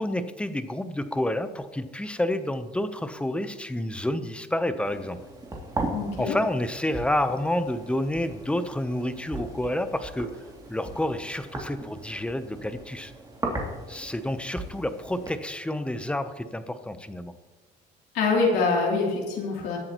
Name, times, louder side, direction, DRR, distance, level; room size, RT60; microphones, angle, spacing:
voice 1, 0.0-5.2 6.2-10.3 10.7-13.1 13.9-17.3, left 1 dB, 5° left, 10 dB, 0.8 m, -29 dB
sound 1, 4.8-15.3, right 2 dB, 20° right, 2.7 m, -38 dB
voice 2, 5.9-6.3 18.1-19.8, left 4 dB, 85° left, -2 dB, 3.3 m, -24 dB
21.5 x 8.5 x 3.1 m, 1.3 s
cardioid pair, 110°, 17 cm